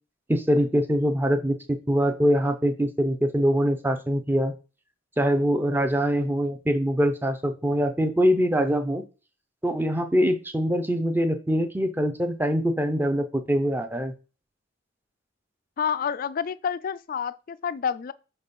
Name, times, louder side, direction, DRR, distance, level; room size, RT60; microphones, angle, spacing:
voice 1, 0.3-4.5 5.2-9.0 9.6-14.1, equal, 10° right, 0.6 m, -23 dB
voice 2, 15.8-18.1, left 7 dB, 45° left, 0.3 m, -28 dB
5.1 x 4.1 x 5.2 m
head